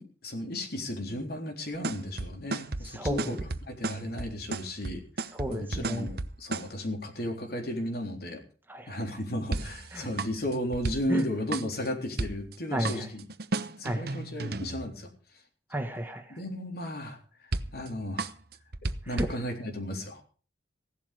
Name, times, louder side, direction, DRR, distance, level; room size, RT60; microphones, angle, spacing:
voice 1, 0.0-3.4 3.7-5.0 5.5-8.4 8.9-13.3 13.6-15.1 16.3-17.2 17.7-18.3 19.1-20.2, left 1 dB, 55° left, 3 dB, 3.7 m, -34 dB
sound 1, 1.7-6.7 9.5-11.2 11.5-11.9 12.2-12.5 12.8-14.9 17.5-17.9 18.2-19.3, right 2 dB, 60° right, 1.0 m, -33 dB
voice 2, 2.9-3.4 5.4-6.1 8.7-9.0 9.9-10.1 11.1-11.2 12.7-13.0 13.8-14.0 15.7-16.4 19.2-19.3, equal, 10° right, 5 dB, 1.6 m, -32 dB
16.5 x 11.5 x 5.0 m, 0.38 s
head